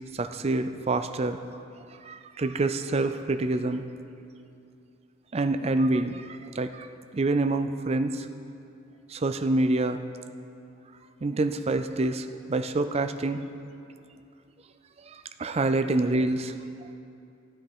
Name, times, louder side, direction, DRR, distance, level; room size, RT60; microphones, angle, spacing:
voice 1, 0.1-1.4 2.0-3.8 5.3-6.9 7.1-8.3 9.1-10.0 11.2-13.4 15.1-16.5, right 2 dB, 30° right, 9 dB, 0.4 m, -27 dB
13.5 x 9.0 x 4.8 m, 2.6 s
head